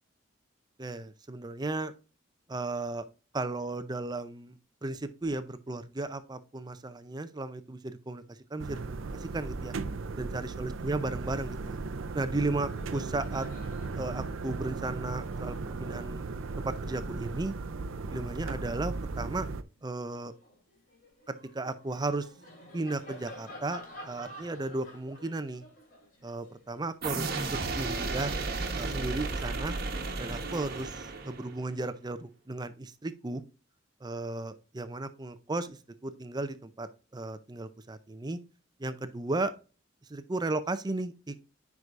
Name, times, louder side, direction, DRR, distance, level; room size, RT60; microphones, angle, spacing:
voice 1, 0.8-1.9 2.5-3.0 3.3-4.6 4.8-9.7 10.2-11.8 12.1-13.5 14.0-16.2 16.6-17.5 18.1-19.5 19.8-20.3 21.3-22.3 22.7-23.8 24.1-25.6 26.2-28.3 28.8-29.8 30.2-33.4 34.0-35.8 36.0-36.9 37.1-38.4 38.8-39.5 40.1-41.4, right 2 dB, 20° right, 11 dB, 0.5 m, -35 dB
sound 1, 8.6-19.6, right 3 dB, 80° right, 0.5 m, -36 dB
Laughter, 12.0-12.2 12.5-19.2 19.7-27.9, left 1 dB, 45° left, 3.1 m, -52 dB
sound 2, 27.0-31.7, right 3 dB, 50° right, 1.2 m, -33 dB
9.6 x 4.8 x 2.5 m, 0.33 s
head